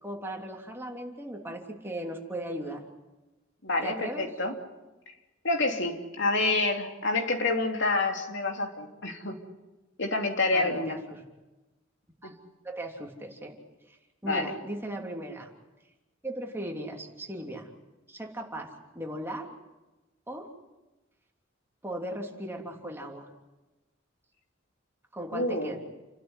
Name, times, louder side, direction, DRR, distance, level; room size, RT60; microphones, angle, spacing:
voice 1, 0.0-2.8 3.8-4.3 10.5-11.2 12.2-12.4 12.6-13.6 13.9-14.0 14.2-15.5 16.2-17.7 18.1-19.5 20.3-20.5 21.8-23.3 25.1-25.8, right 1 dB, 10° right, 0 dB, 3.2 m, -37 dB
voice 2, 3.6-4.5 5.4-9.4 10.0-11.0 12.2-12.3 14.2-14.5 25.3-25.7, left 2 dB, 65° left, 2 dB, 3.2 m, -28 dB
30.0 x 12.5 x 9.9 m, 1.1 s
head